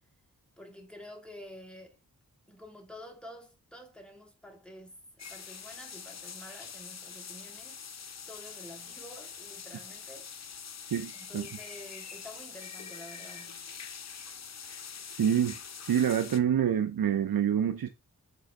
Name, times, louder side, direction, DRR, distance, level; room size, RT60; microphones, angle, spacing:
voice 1, 0.6-2.0 2.5-7.8 8.3-10.3 11.1-13.7, left 1 dB, 5° left, 2.6 m, -49 dB
sound 1, 5.2-16.4, left 6 dB, 50° left, 0.7 m, -44 dB
voice 2, 10.9-11.5 15.1-15.6 15.9-17.9, right 9 dB, 75° right, 0.7 m, -27 dB
7.6 x 3.8 x 3.7 m
cardioid pair, 50°, 36 cm